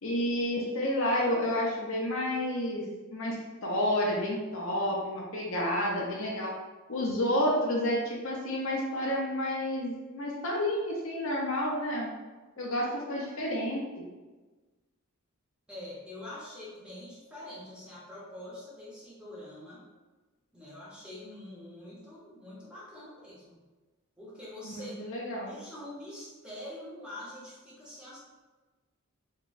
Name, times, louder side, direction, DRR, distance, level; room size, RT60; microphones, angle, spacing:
voice 1, 0.0-2.9 3.1-6.5 6.9-12.1 12.6-14.0 24.6-25.5, left 1 dB, 60° left, -2 dB, 0.6 m, -30 dB
voice 2, 15.7-19.8 20.5-23.6 24.2-25.0 25.5-28.2, left 1 dB, 5° right, -8 dB, 0.8 m, -45 dB
3.8 x 2.2 x 2.5 m, 1.2 s
head